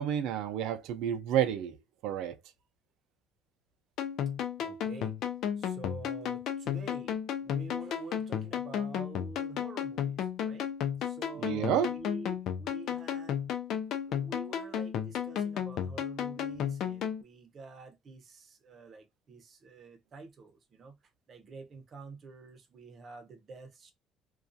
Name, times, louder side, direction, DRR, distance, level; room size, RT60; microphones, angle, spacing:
voice 1, 0.0-1.8 2.0-2.4 11.4-11.9, right 10 dB, 80° right, 0.4 m, -30 dB
sound 1, 4.0-17.2, left 9 dB, 65° left, 0.4 m, -34 dB
voice 2, 4.6-5.2 5.6-10.7 11.0-13.5 14.1-21.0 21.3-23.9, right 3 dB, 45° right, 0.7 m, -48 dB
2.3 x 2.3 x 2.6 m
cardioid pair, 110°, 0 cm